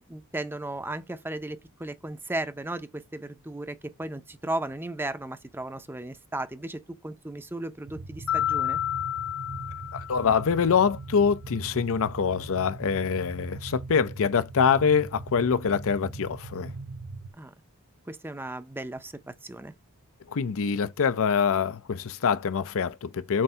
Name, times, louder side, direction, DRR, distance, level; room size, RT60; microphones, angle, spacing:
voice 1, 0.0-8.8 17.4-17.5 18.1-19.7, right 1 dB, 10° right, 0.6 m, -35 dB
sound 1, 7.9-17.3, right 3 dB, 50° right, 0.7 m, -41 dB
Mallet percussion, 8.3-10.7, left 12 dB, 80° left, 1.7 m, -30 dB
voice 2, 9.9-16.7 20.3-23.4, left 6 dB, 65° left, 0.5 m, -25 dB
7.4 x 2.7 x 5.5 m
head